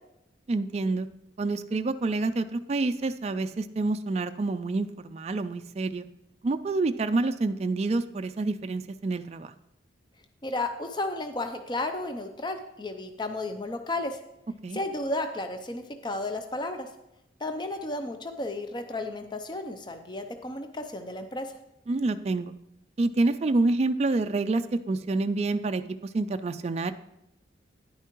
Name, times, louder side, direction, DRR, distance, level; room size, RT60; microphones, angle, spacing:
voice 1, 0.5-1.1 1.4-6.1 6.4-9.5 14.6-14.8 21.9-22.5 23.0-25.8 26.1-26.9, right 3 dB, 35° right, 8 dB, 0.3 m, -27 dB
voice 2, 10.4-14.2 14.7-16.9 17.4-21.5, left 2 dB, 25° left, 6 dB, 0.5 m, -33 dB
10.0 x 9.3 x 3.0 m, 0.87 s
head